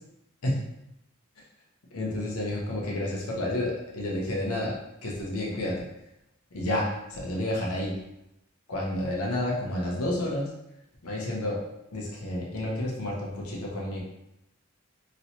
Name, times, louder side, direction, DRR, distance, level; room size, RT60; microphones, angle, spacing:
voice 1, 1.9-5.8 6.5-8.0 8.7-10.5 11.0-11.6 11.9-14.0, left 1 dB, 90° left, -3 dB, 0.8 m, -30 dB
3.1 x 2.8 x 2.8 m, 0.86 s
head